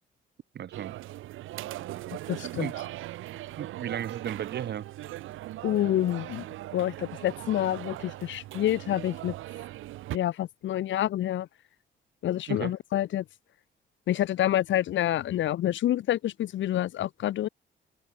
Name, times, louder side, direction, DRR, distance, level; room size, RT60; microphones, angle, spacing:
voice 1, 0.5-0.9 2.6-2.7 3.6-4.8 12.5-12.7, right 9 dB, 60° right, 1.7 m, -34 dB
sound 1, 0.7-10.2, right 15 dB, 85° right, 2.6 m, -39 dB
voice 2, 2.3-2.7 5.6-6.4 6.7-9.3 10.1-11.5 12.2-13.2 14.1-17.5, left 12 dB, 75° left, 1.4 m, -27 dB
open air
cardioid pair, 90°, 20 cm